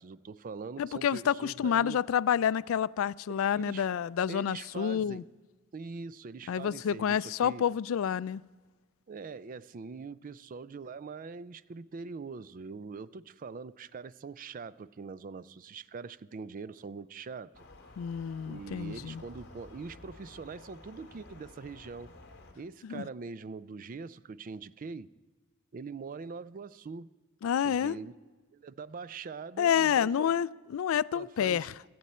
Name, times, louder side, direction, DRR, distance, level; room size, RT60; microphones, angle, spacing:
voice 1, 0.0-2.0 3.6-3.9 4.3-5.2 5.7-7.6 9.1-17.7 18.5-22.1 22.6-25.1 25.7-27.1 27.6-28.1 28.5-30.3 31.1-31.7, right 4 dB, 40° right, 17 dB, 0.4 m, -43 dB
voice 2, 0.8-5.2 6.5-8.4 18.0-19.2 22.8-23.1 27.4-28.0 29.6-31.7, left 8 dB, 85° left, 21 dB, 0.3 m, -29 dB
sound 1, 17.5-22.5, left 2 dB, 55° left, 2.2 m, -52 dB
17.5 x 13.0 x 4.3 m, 1.3 s
head